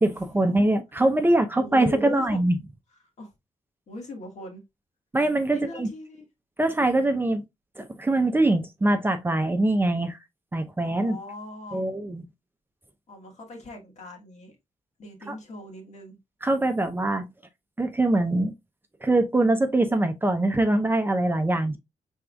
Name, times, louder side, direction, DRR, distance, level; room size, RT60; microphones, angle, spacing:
voice 1, 0.0-2.6 5.1-5.9 6.6-7.4 7.8-10.2 10.5-11.2 11.7-12.2 15.3-15.4 16.4-17.3 17.8-18.5 19.0-21.8, right 2 dB, 15° right, 0.6 m, -23 dB
voice 2, 1.6-2.4 3.2-3.3 3.9-4.6 5.5-6.2 7.3-7.4 10.8-11.8 13.1-14.6 15.0-16.2, left 1 dB, 65° left, 1.7 m, -39 dB
4.8 x 3.5 x 2.3 m
cardioid pair, 80°, 13 cm